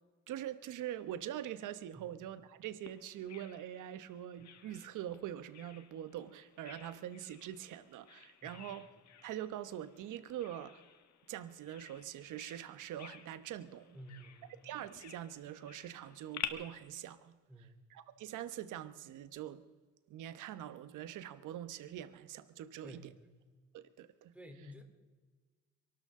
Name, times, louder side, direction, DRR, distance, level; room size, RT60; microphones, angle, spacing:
voice 1, 0.3-8.8 9.2-10.8 11.3-14.0 14.6-19.6 20.1-23.1 23.7-24.3, right 11 dB, 85° right, 1.1 m, -44 dB
Bird vocalization bird call bird song, 2.9-16.5, left 9 dB, 65° left, 1.5 m, -51 dB
voice 2, 13.9-14.6 17.5-17.8 22.8-23.1 24.3-24.8, equal, 5° right, 3.4 m, -52 dB
29.0 x 12.5 x 3.7 m
cardioid pair, 90°, 30 cm